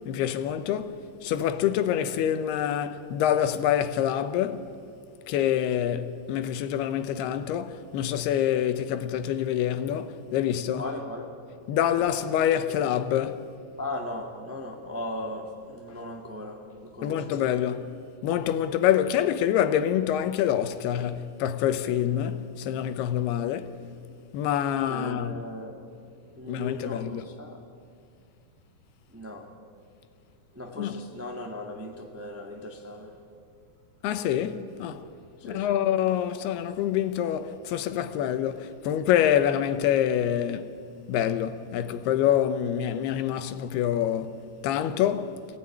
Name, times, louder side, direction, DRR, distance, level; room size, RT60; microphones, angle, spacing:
voice 1, 0.1-4.7 5.3-10.8 11.7-13.5 17.0-18.0 18.2-23.7 24.3-25.4 26.5-27.3 30.8-31.0 34.0-35.0 35.4-40.7 41.1-45.4, left 10 dB, 90° left, 3.0 m, -26 dB
voice 2, 10.8-11.4 12.0-12.1 13.8-17.4 24.9-25.8 26.3-27.6 29.1-29.5 30.5-33.2 35.4-35.8, left 1 dB, 20° right, 0.4 m, -38 dB
26.0 x 17.5 x 9.9 m
omnidirectional pair, 4.4 m